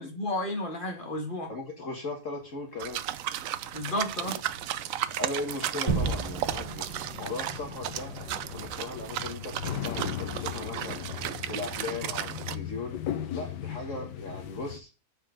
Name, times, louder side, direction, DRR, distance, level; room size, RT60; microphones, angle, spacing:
voice 1, 0.0-1.5 3.7-4.4, left 1 dB, 30° left, 1.7 m, -32 dB
voice 2, 1.5-3.0 3.9-4.3 5.2-8.1 8.5-11.0 11.5-13.0 13.3-14.9, left 2 dB, 50° left, 1.7 m, -38 dB
sound 1, 2.8-12.6, right 12 dB, 75° right, 0.8 m, -35 dB
sound 2, 3.1-14.8, left 10 dB, 75° left, 1.4 m, -39 dB
Gunshot gunfire / Fireworks / Boom, 5.9-10.7, right 4 dB, 20° right, 3.5 m, -35 dB
7.5 x 5.3 x 4.9 m
omnidirectional pair, 1.9 m